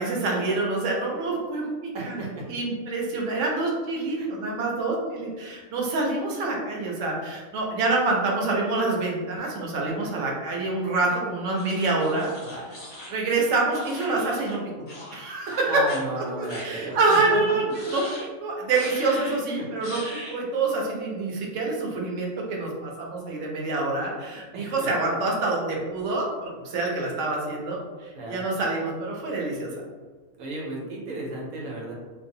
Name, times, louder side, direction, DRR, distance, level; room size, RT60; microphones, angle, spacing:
voice 1, 0.0-2.2 2.5-12.3 13.1-14.6 15.1-15.7 16.2-17.6 17.9-18.0 18.4-20.0 20.3-29.7, right 3 dB, 65° right, -2 dB, 0.9 m, -26 dB
voice 2, 1.9-2.4 4.2-4.3 9.3-9.5 9.8-9.9 11.1-11.2 12.4-12.7 15.7-17.4 19.1-19.3 19.6-19.7 24.5-24.9 28.1-28.4 30.4-31.9, right 2 dB, 90° right, -3 dB, 1.2 m, -35 dB
sound 1, 11.6-14.6 14.9-15.2 15.5-16.0 16.5-16.6 17.1-17.2 17.7-18.3 18.7-19.4 19.8-20.4, left 1 dB, 45° left, 0.7 m, -40 dB
2.6 x 2.0 x 2.6 m, 1.4 s
omnidirectional pair, 1.5 m